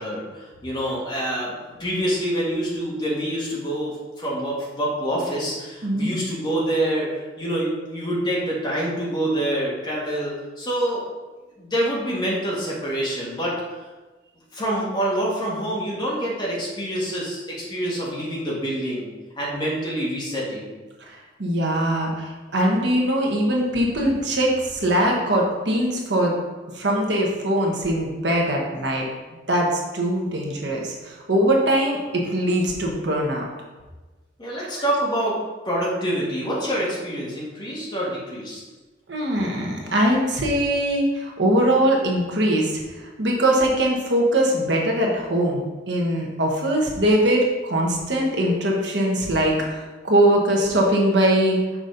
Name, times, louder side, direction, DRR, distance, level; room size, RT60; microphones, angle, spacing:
voice 1, 0.0-11.0 11.6-13.5 14.5-17.4 17.7-19.1 19.4-20.7 34.4-35.4 35.7-38.6, right 1 dB, 25° left, -6 dB, 1.9 m, -26 dB
voice 2, 21.4-26.3 26.7-29.0 29.5-33.4 39.1-42.8 43.2-51.6, right 1 dB, 65° right, -1 dB, 1.2 m, -21 dB
6.2 x 4.1 x 5.1 m, 1.2 s
head